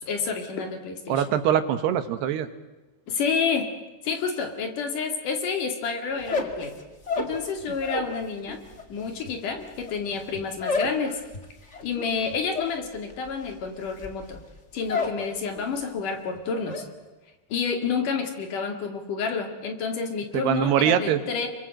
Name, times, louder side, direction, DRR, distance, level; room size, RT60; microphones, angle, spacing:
voice 1, 0.0-1.2 3.1-3.7 4.0-6.7 7.2-8.6 8.9-11.2 11.8-14.4 14.7-16.8 17.5-21.5, left 5 dB, 55° left, 5 dB, 3.5 m, -29 dB
voice 2, 1.1-2.5 20.3-21.2, right 10 dB, 75° right, 11 dB, 3.3 m, -23 dB
sound 1, 6.1-8.2 8.5-15.3 15.6-16.1 16.3-16.9, left 3 dB, 25° left, 1.7 m, -31 dB
28.5 x 23.5 x 7.8 m, 1.1 s
omnidirectional pair, 4.8 m